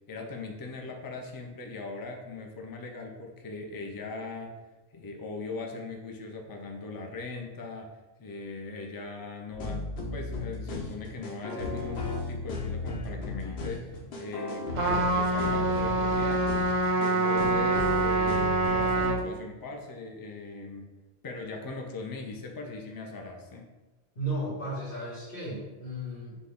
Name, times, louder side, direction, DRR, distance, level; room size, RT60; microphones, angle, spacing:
voice 1, 0.1-4.6 4.9-16.5 17.0-20.9 21.2-23.7, left 3 dB, 30° left, 2 dB, 0.4 m, -40 dB
sound 1, 9.5-19.2, left 3 dB, 85° left, 1.0 m, -35 dB
Trumpet, 14.7-19.2, right 2 dB, 50° right, 0.7 m, -26 dB
voice 2, 24.2-26.4, right 1 dB, 55° left, -10 dB, 1.9 m, -34 dB
6.1 x 2.2 x 3.5 m, 1.2 s
omnidirectional pair, 1.0 m